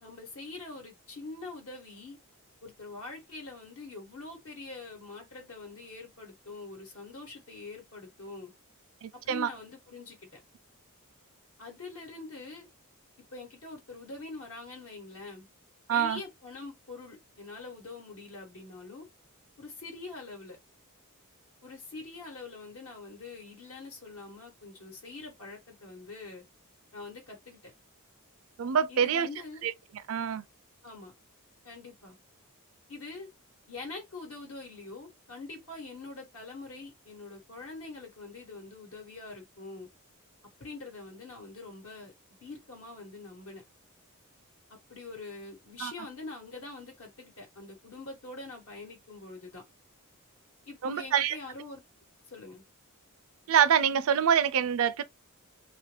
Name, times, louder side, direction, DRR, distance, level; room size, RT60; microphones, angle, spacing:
voice 1, 0.0-2.2 2.6-8.5 9.1-10.4 11.6-12.7 13.3-15.5 15.9-19.1 19.6-20.6 21.6-26.4 26.9-27.7 28.9-29.7 30.8-31.1 31.6-32.2 32.9-33.3 33.7-39.9 40.6-42.1 42.4-43.6 44.9-49.6 50.7-51.8 52.3-52.6, left 3 dB, 70° left, 1.1 m, -44 dB
voice 2, 9.0-9.5 15.9-16.2 28.6-29.3 29.6-29.7 30.1-30.4 45.8-45.9 50.8-51.4 53.5-55.0, right 8 dB, 65° right, 0.4 m, -25 dB
2.9 x 2.5 x 3.1 m
head